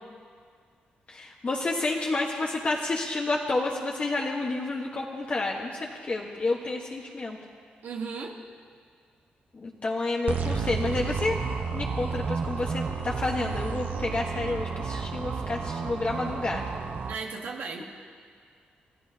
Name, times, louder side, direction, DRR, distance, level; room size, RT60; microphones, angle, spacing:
voice 1, 1.1-7.4 9.5-11.4 11.7-16.7, left 2 dB, 40° left, -1 dB, 1.2 m, -30 dB
voice 2, 7.8-8.4 17.0-17.8, right 5 dB, 75° right, 0 dB, 1.4 m, -35 dB
sound 1, 10.3-17.1, right 5 dB, 60° right, 0.9 m, -31 dB
28.0 x 13.5 x 2.8 m, 2.1 s
cardioid pair, 75°, 3 cm